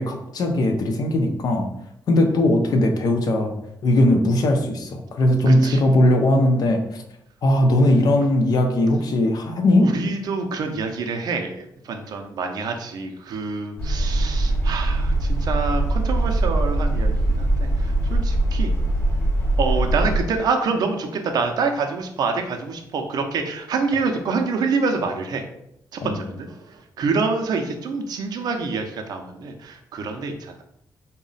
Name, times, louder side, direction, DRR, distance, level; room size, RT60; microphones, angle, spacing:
voice 1, 0.0-1.7 2.1-3.5 3.8-7.0 7.4-9.9 26.0-26.2, left 1 dB, 65° left, 4 dB, 0.5 m, -19 dB
voice 2, 5.5-5.8 9.8-18.7 19.6-25.4 25.9-30.6, right 4 dB, 70° right, 4 dB, 0.5 m, -26 dB
sound 1, 13.8-20.2, right 1 dB, 35° left, 0.8 m, -21 dB
3.9 x 2.1 x 3.8 m, 0.78 s
cardioid pair, 135°, 7 cm